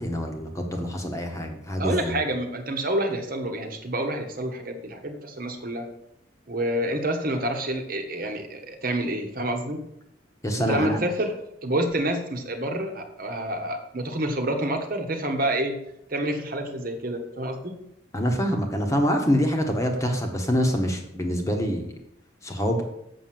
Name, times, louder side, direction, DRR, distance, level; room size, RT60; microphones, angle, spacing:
voice 1, 0.0-2.2 10.4-11.0 18.1-21.9 22.4-22.8, equal, 15° left, 3 dB, 1.3 m, -25 dB
voice 2, 1.8-5.9 6.5-9.8 10.6-11.3 11.6-15.8 16.1-17.8, right 1 dB, 45° right, 4 dB, 1.3 m, -28 dB
7.4 x 6.1 x 7.7 m, 0.79 s
head